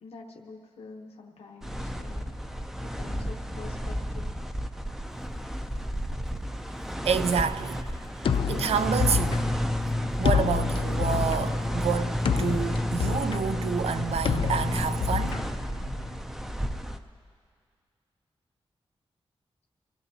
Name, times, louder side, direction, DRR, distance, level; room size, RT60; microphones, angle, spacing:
voice 1, 0.0-2.3 2.8-4.4, left 4 dB, 90° left, 0.9 m, -46 dB
sound 1, 1.6-17.0, equal, 5° right, 0.4 m, -31 dB
voice 2, 7.0-7.9 8.5-9.5 10.2-15.4, right 6 dB, 85° right, 0.5 m, -28 dB
sound 2, 8.2-16.2, left 7 dB, 60° left, 0.4 m, -29 dB
26.0 x 15.5 x 2.8 m
wide cardioid pair, 175°, 10 cm